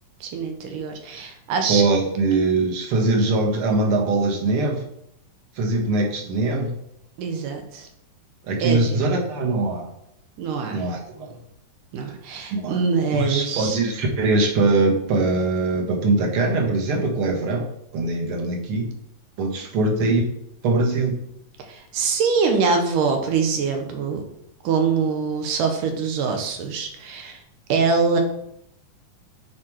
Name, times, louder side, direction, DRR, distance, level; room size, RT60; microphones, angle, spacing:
voice 1, 0.2-1.8 7.2-7.9 8.6-9.1 10.4-10.8 11.9-13.8 21.7-24.2 24.6-27.4 27.7-28.2, right 5 dB, 80° right, 4 dB, 2.8 m, -24 dB
voice 2, 1.7-4.8 5.6-6.8 8.4-9.9 10.7-11.3 12.5-12.8 13.1-18.9 19.4-20.2 20.6-21.2, right 2 dB, 50° right, 1 dB, 2.0 m, -22 dB
9.2 x 4.9 x 4.7 m, 0.75 s
omnidirectional pair, 3.7 m